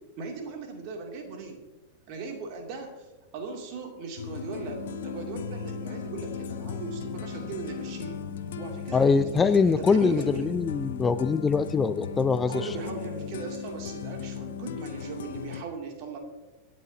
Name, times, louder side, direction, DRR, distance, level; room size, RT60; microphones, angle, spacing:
voice 1, 0.2-1.6 2.1-3.1 3.3-8.2 8.6-10.5 12.5-16.2, right 4 dB, 45° right, 2 dB, 2.8 m, -38 dB
sound 1, 4.2-15.6, left 8 dB, 60° left, 0.7 m, -38 dB
sound 2, 4.7-14.7, left 3 dB, 75° right, 2.9 m, -43 dB
voice 2, 8.9-12.6, left 5 dB, 15° left, 13 dB, 0.5 m, -23 dB
25.5 x 9.4 x 2.9 m, 1.1 s
figure-of-eight pair, 90°, 0 cm